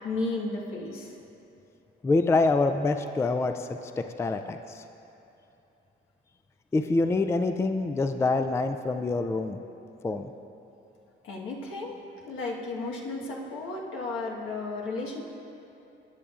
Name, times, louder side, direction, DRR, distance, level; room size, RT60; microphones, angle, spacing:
voice 1, 0.0-1.1 11.2-12.0 12.2-15.2, left 3 dB, 80° left, -2 dB, 1.4 m, -33 dB
voice 2, 2.0-3.7 4.2-4.8 6.7-9.6 10.0-10.3, left 3 dB, 15° left, 7 dB, 0.3 m, -25 dB
19.0 x 6.8 x 2.4 m, 2.9 s
cardioid pair, 90°, 20 cm